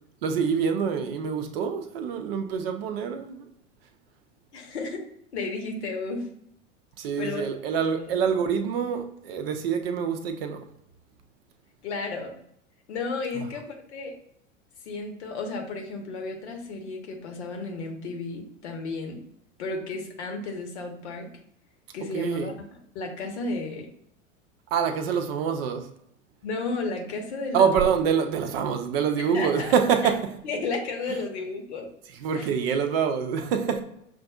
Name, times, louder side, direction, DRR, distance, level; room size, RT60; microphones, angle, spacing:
voice 1, 0.2-3.5 7.0-10.7 13.3-13.5 22.1-22.5 24.7-25.9 27.5-30.4 31.1-31.2 32.1-33.8, right 7 dB, 50° right, 0.6 m, -26 dB
voice 2, 4.5-5.0 5.3-6.2 7.2-7.4 8.0-8.1 11.8-12.3 12.9-14.1 14.9-19.2 19.6-21.3 21.9-22.5 22.9-23.9 26.4-27.7 29.3-29.7 30.4-31.9 32.3-32.5, left 3 dB, 60° left, 1.0 m, -33 dB
5.9 x 2.5 x 2.3 m
figure-of-eight pair, 85°, 37 cm